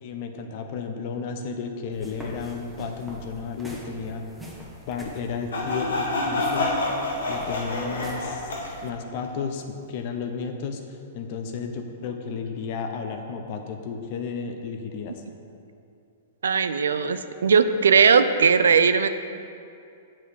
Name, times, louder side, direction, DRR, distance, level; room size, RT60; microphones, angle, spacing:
voice 1, 0.0-4.2 4.8-6.7 7.3-15.2, left 5 dB, 50° left, 5 dB, 1.0 m, -33 dB
sound 1, 1.9-8.9, left 1 dB, ahead, 1.3 m, -44 dB
Sawing, 5.5-8.7, left 2 dB, 75° left, 1.9 m, -27 dB
voice 2, 16.4-19.1, right 6 dB, 75° right, 11 dB, 0.4 m, -19 dB
8.5 x 7.4 x 5.0 m, 2.5 s
hypercardioid pair, 115°, 0 cm